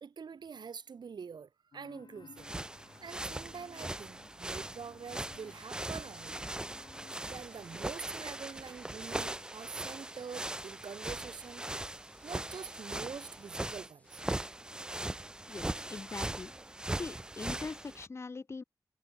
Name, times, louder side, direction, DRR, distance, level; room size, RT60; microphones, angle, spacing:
voice 1, 0.0-2.5 3.0-6.4 7.2-11.6 12.2-14.2, right 6 dB, 75° right, 1.7 m, -45 dB
sound 1, 1.7-7.9, left 6 dB, 70° left, 5.6 m, -58 dB
sound 2, 2.4-18.1, right 1 dB, 10° right, 0.3 m, -40 dB
sound 3, 5.1-6.4 7.0-14.3, left 2 dB, 20° left, 3.1 m, -66 dB
voice 2, 15.5-16.5 16.9-18.6, left 4 dB, 35° left, 0.7 m, -42 dB
wide cardioid pair, 130°, 8 cm